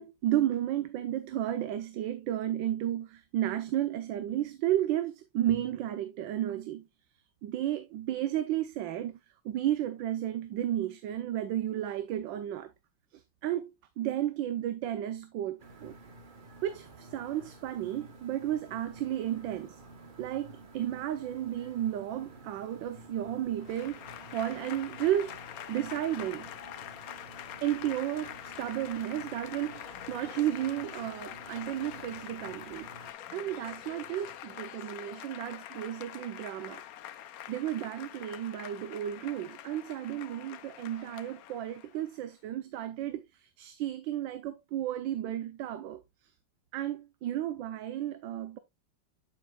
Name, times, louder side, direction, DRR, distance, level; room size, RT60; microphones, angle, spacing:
voice 1, 0.0-6.9 7.4-9.2 9.4-12.7 13.1-15.9 16.6-19.8 20.2-25.4 25.7-26.5 27.6-32.9 33.3-36.8 37.5-46.0 46.7-48.6, right 12 dB, 85° right, 1.4 m, -33 dB
sound 1, 15.6-33.1, right 2 dB, 35° right, 0.9 m, -52 dB
Applause / Crowd, 23.6-42.2, left 11 dB, 70° left, 0.9 m, -45 dB
8.7 x 7.3 x 2.3 m
omnidirectional pair, 2.0 m